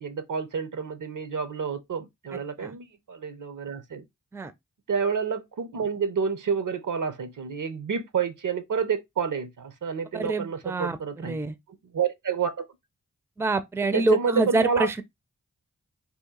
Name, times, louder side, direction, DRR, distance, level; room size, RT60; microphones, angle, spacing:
voice 1, 0.0-4.0 4.9-11.4 11.9-12.6 13.9-15.0, right 6 dB, 70° right, 0.6 m, -29 dB
voice 2, 2.3-2.7 4.3-4.5 10.1-11.6 13.4-15.0, right 2 dB, 10° right, 0.4 m, -26 dB
2.9 x 2.3 x 3.7 m
wide cardioid pair, 60°, 32 cm